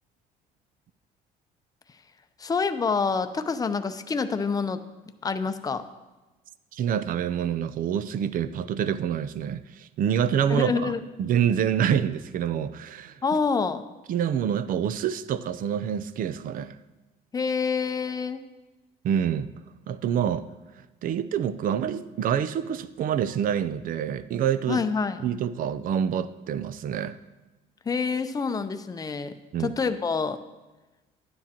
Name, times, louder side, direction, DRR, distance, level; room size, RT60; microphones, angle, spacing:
voice 1, 2.4-4.8 5.2-5.9 10.5-11.0 13.2-13.8 17.3-18.4 24.7-25.2 27.9-29.3 29.6-30.4, left 5 dB, 20° left, 9 dB, 0.6 m, -27 dB
voice 2, 6.7-10.9 11.2-13.4 14.1-16.8 19.0-19.5 19.9-20.5 21.0-24.8 25.2-27.2 29.5-29.7, right 9 dB, 55° right, 14 dB, 0.5 m, -27 dB
12.0 x 9.7 x 2.9 m, 1.1 s
cardioid pair, 110°, 17 cm